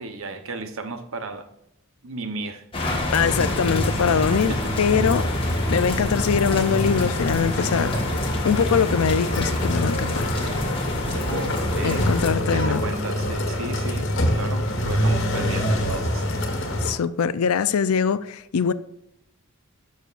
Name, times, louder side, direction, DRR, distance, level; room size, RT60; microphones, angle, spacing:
voice 1, 0.0-1.5 2.0-2.6 4.3-4.7 11.0-16.3, right 3 dB, 65° right, 0.9 m, -34 dB
sound 1, 2.7-12.3, left 1 dB, 25° left, 1.4 m, -28 dB
voice 2, 3.1-5.3 5.7-10.3 11.8-12.8 16.8-18.7, left 6 dB, 80° left, 0.5 m, -23 dB
sound 2, 3.2-16.9, equal, 60° left, 1.4 m, -26 dB
12.0 x 6.4 x 2.5 m
head